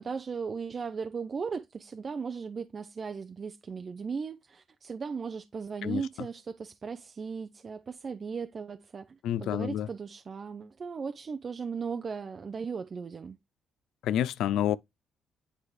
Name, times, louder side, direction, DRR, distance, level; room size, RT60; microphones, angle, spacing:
voice 1, 0.0-13.4, right 5 dB, 40° right, 0.5 m, -37 dB
voice 2, 9.2-9.9 14.0-14.8, left 10 dB, 85° left, 0.3 m, -28 dB
9.7 x 3.3 x 3.1 m
cardioid pair, 90°, 0 cm